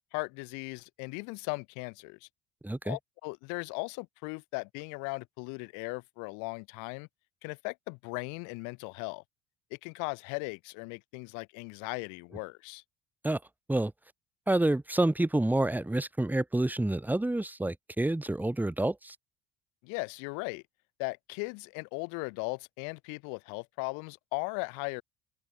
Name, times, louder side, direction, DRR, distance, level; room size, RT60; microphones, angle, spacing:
voice 1, 0.1-2.3 2.8-7.1 7.4-9.2 9.7-12.8 19.8-20.6 21.0-25.0, left 33 dB, 65° left, 0.9 m, -38 dB
voice 2, 2.6-3.0 13.2-13.4 13.7-13.9 14.5-19.2, right 1 dB, 5° right, 1.0 m, -28 dB
open air
hypercardioid pair, 55°, 33 cm